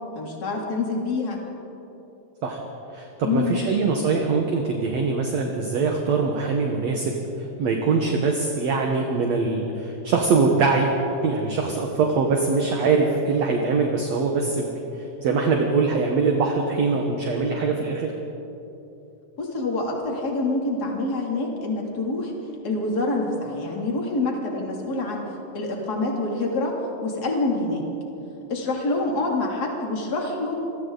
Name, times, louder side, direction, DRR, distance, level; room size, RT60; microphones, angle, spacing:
voice 1, 0.1-1.4 3.2-3.5 19.4-22.3 22.6-25.2 25.5-26.8 27.0-27.8 28.5-30.6, left 2 dB, 30° left, -1 dB, 3.2 m, -26 dB
voice 2, 2.9-10.9 11.2-14.7 15.0-18.1, right 4 dB, 60° right, 2 dB, 2.3 m, -23 dB
29.5 x 22.0 x 4.0 m, 3.0 s
omnidirectional pair, 3.9 m